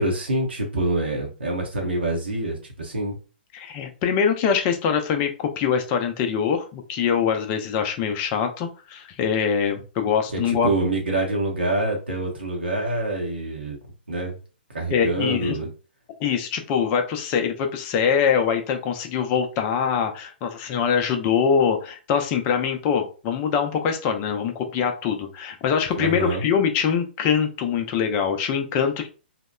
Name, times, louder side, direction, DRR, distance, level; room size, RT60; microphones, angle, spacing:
voice 1, 0.0-3.2 10.3-13.8 14.1-14.4 14.7-15.7 26.0-26.4, right 1 dB, 75° right, 0 dB, 0.8 m, -26 dB
voice 2, 3.5-10.7 14.9-15.6 16.2-29.1, left 7 dB, 30° left, 5 dB, 0.4 m, -23 dB
2.8 x 2.0 x 2.2 m, 0.35 s
figure-of-eight pair, 120°, 6 cm